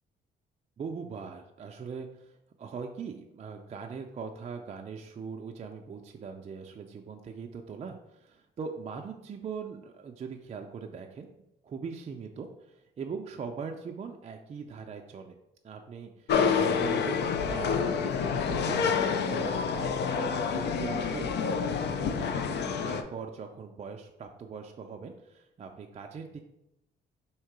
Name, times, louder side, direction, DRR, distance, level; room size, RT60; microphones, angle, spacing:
voice 1, 0.8-11.3 11.6-15.3 15.6-26.4, right 5 dB, 35° right, 3 dB, 0.4 m, -41 dB
sound 1, 16.3-23.0, left 6 dB, 60° left, 0.5 m, -28 dB
3.6 x 2.8 x 4.6 m, 0.85 s
cardioid pair, 90°, 20 cm